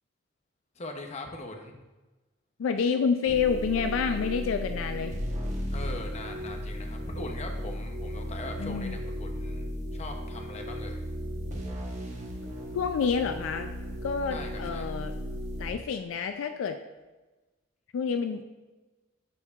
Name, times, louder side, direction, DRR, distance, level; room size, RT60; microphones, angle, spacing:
voice 1, 0.8-1.8 5.7-9.6 9.9-11.0 14.3-14.9, left 2 dB, 35° left, 3 dB, 0.7 m, -41 dB
voice 2, 2.6-5.1 8.6-9.0 12.7-13.7 14.0-15.1 15.6-16.8 17.9-18.4, left 6 dB, 75° left, 7 dB, 0.3 m, -28 dB
sound 1, 3.3-15.7, equal, 35° right, 1.1 m, -35 dB
10.5 x 4.5 x 2.4 m, 1.2 s
head